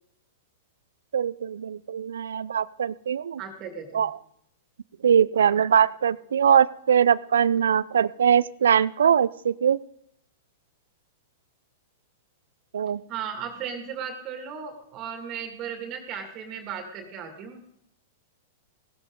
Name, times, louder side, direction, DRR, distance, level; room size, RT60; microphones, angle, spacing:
voice 1, 1.1-3.4 3.9-4.1 5.0-9.8 12.7-13.0, right 8 dB, 75° right, 21 dB, 0.5 m, -22 dB
voice 2, 3.4-4.1 13.1-17.6, right 7 dB, 40° right, 5 dB, 2.2 m, -36 dB
17.0 x 14.0 x 3.8 m, 0.73 s
hypercardioid pair, 105°, 0 cm